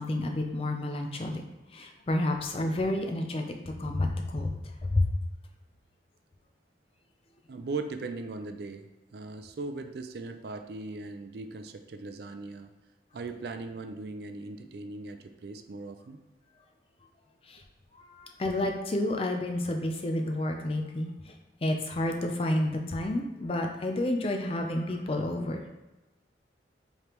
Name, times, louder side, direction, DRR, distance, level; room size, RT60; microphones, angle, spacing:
voice 1, 0.0-1.4 1.7-5.2 17.5-17.6 18.1-21.1 21.6-25.6, left 1 dB, 30° left, 3 dB, 0.4 m, -30 dB
voice 2, 7.5-12.7 13.1-16.2, right 3 dB, 60° right, 7 dB, 0.4 m, -39 dB
4.9 x 3.2 x 3.0 m, 1.1 s
head